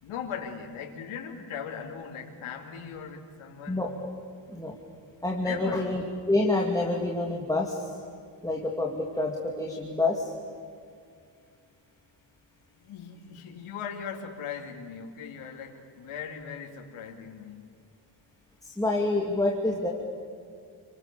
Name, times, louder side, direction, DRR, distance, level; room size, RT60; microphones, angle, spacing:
voice 1, 0.0-3.8 5.4-5.8 12.7-17.7, left 7 dB, 90° left, 0 dB, 3.3 m, -39 dB
voice 2, 5.2-7.9 8.4-10.3 18.6-19.9, left 2 dB, 5° left, 0 dB, 2.6 m, -27 dB
29.5 x 25.5 x 7.0 m, 2.3 s
cardioid pair, 130°, 48 cm